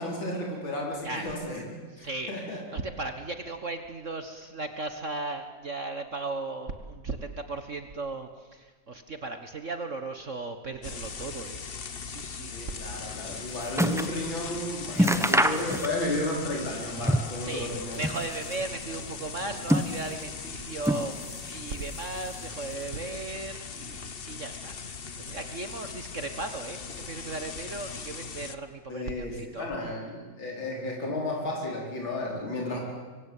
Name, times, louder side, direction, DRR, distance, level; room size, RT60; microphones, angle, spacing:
voice 1, 0.0-1.7 2.0-2.6 12.5-18.0 28.9-32.8, left 1 dB, 90° left, -1 dB, 5.4 m, -33 dB
voice 2, 1.0-1.3 2.0-11.6 12.0-12.8 14.9-15.3 17.4-21.2 21.5-29.7, right 3 dB, 40° right, 7 dB, 1.6 m, -36 dB
sound 1, 10.8-28.6, left 5 dB, 35° left, 1.1 m, -40 dB
sound 2, 13.0-14.2 14.5-14.6 14.9-16.2 16.5-17.5 17.8-18.7 19.3-20.3 20.8-21.5 21.8-22.6 23.3-23.4, equal, ahead, 0.7 m, -27 dB
25.5 x 23.5 x 9.1 m, 1.4 s
omnidirectional pair, 2.1 m